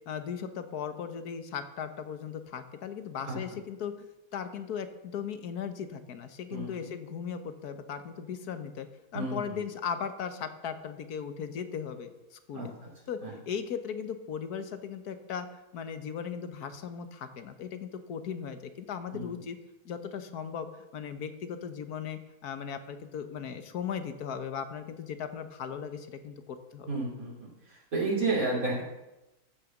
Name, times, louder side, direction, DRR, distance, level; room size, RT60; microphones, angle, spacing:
voice 1, 0.1-8.9 9.1-12.7 13.1-13.2 13.5-19.6 19.9-26.9, left 7 dB, 75° left, 10 dB, 1.6 m, -37 dB
voice 2, 9.1-9.6 12.5-12.7 13.2-13.3 19.1-19.3 26.9-27.5 27.9-28.8, right 3 dB, 65° right, -6 dB, 3.7 m, -30 dB
14.0 x 6.6 x 7.3 m, 0.96 s
omnidirectional pair, 1.6 m